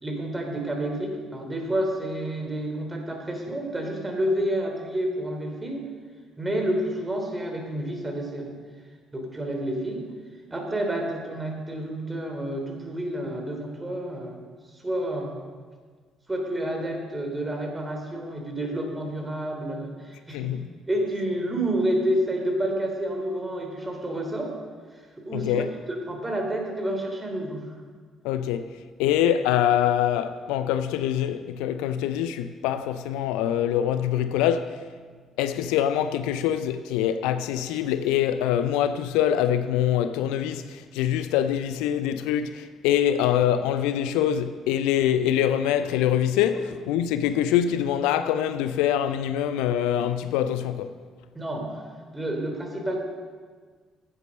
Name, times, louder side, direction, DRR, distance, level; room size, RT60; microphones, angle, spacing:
voice 1, 0.0-5.9 6.4-8.5 9.1-10.0 10.5-14.4 14.8-15.3 16.3-20.5 20.9-24.6 25.3-27.7 51.3-51.8 52.1-53.0, right 1 dB, 20° right, 3.1 m, -29 dB
voice 2, 20.3-20.7 25.3-25.7 28.2-34.8 35.4-50.9, left 10 dB, 70° left, 0.4 m, -24 dB
11.0 x 8.1 x 6.4 m
figure-of-eight pair, 45°, 0 cm